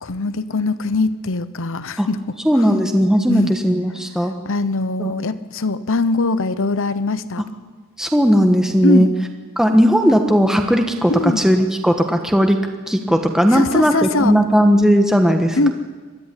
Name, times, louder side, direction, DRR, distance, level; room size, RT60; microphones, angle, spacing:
voice 1, 0.0-2.7 3.3-3.5 4.4-7.5 8.8-9.1 11.1-11.4 13.5-14.4 15.5-15.7, left 3 dB, 60° left, 14 dB, 1.0 m, -21 dB
voice 2, 2.4-4.3 5.0-5.1 8.0-9.1 9.6-12.6 12.9-15.7, equal, 5° right, 4 dB, 1.3 m, -16 dB
22.0 x 13.5 x 10.0 m, 1.4 s
head